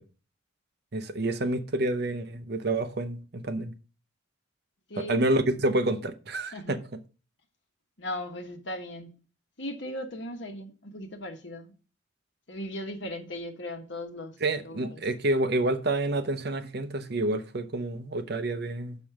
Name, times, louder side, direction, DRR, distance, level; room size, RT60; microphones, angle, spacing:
voice 1, 0.9-3.7 5.0-6.8 14.4-19.0, right 2 dB, 55° right, 0.7 m, -28 dB
voice 2, 8.0-9.1 9.6-11.7 12.5-14.3 14.6-15.0, left 1 dB, 65° left, 1.3 m, -37 dB
6.4 x 5.3 x 5.9 m
head